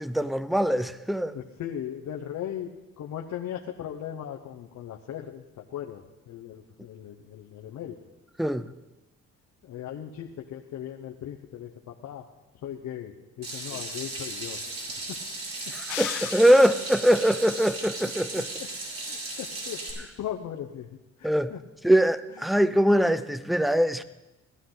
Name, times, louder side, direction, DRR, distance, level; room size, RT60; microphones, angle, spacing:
voice 1, 0.0-1.4 8.4-8.7 15.7-18.5 21.2-21.5 21.8-24.0, equal, ahead, 0.5 m, -22 dB
voice 2, 1.2-2.7 3.0-8.0 9.6-12.3 12.6-14.6 15.1-15.2 18.0-18.1 18.6-18.7 19.0-20.9 21.2-21.6 22.3-22.4, left 10 dB, 70° left, 1.0 m, -38 dB
Water tap faucet / Sink (filling or washing), 13.4-19.9, right 2 dB, 50° right, 6.5 m, -36 dB
sound 1, 15.9-17.2, left 14 dB, 85° left, 0.7 m, -36 dB
18.0 x 12.5 x 4.0 m
cardioid pair, 90°, 30 cm